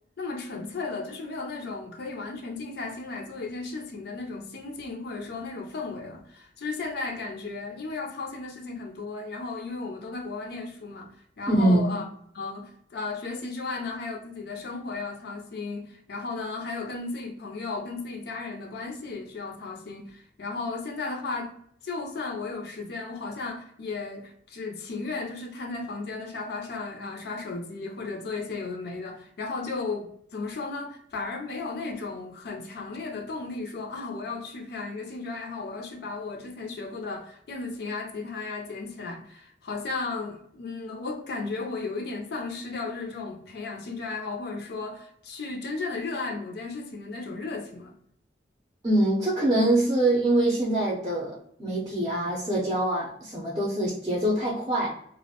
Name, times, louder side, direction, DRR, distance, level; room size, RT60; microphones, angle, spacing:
voice 1, 0.2-12.1 12.3-21.5 21.8-47.9, left 3 dB, 60° left, 0.4 m, -35 dB
voice 2, 11.5-12.0 48.8-54.9, right 1 dB, 25° right, 0.5 m, -24 dB
2.3 x 2.0 x 2.7 m
head